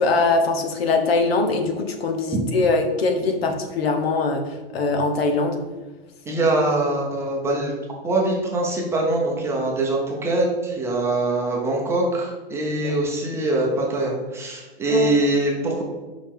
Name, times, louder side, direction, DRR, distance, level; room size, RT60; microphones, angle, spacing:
voice 1, 0.0-5.6 12.8-12.9 14.9-15.1, left 3 dB, 85° left, 4 dB, 1.2 m, -22 dB
voice 2, 6.2-7.7 8.0-15.8, right 2 dB, 10° right, -1 dB, 0.6 m, -23 dB
5.5 x 5.3 x 3.5 m, 1.3 s
hypercardioid pair, 160°, 30 cm